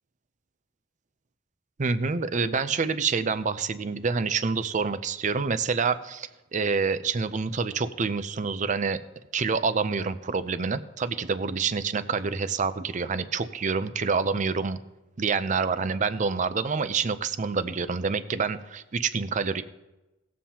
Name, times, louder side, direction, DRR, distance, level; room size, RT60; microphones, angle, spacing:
voice 1, 1.8-9.0 9.3-14.8 15.2-19.6, right 5 dB, 40° right, 12 dB, 0.5 m, -27 dB
18.0 x 7.3 x 2.9 m, 1.0 s
head